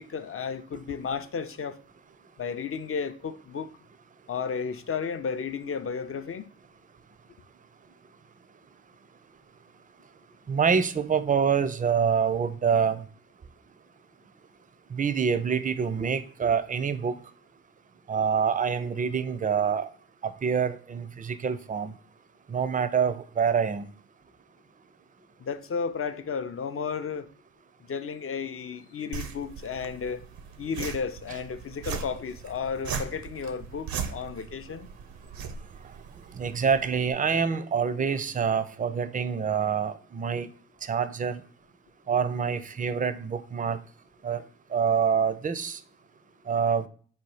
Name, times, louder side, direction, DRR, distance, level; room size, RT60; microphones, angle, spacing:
voice 1, 0.0-1.8 2.4-3.7 4.3-6.5 25.4-27.3 27.9-30.3 30.6-34.9, left 6 dB, 40° left, 0.5 m, -33 dB
voice 2, 10.5-13.0 14.9-17.1 18.1-19.9 20.2-21.9 22.5-23.9 36.3-40.5 40.8-41.4 42.1-43.8 44.2-44.4 44.7-45.8 46.5-46.9, right 6 dB, 25° right, 0.4 m, -26 dB
sound 1, 29.1-37.1, right 6 dB, 80° right, 0.6 m, -39 dB
4.2 x 2.3 x 4.7 m
supercardioid pair, 40°, 35 cm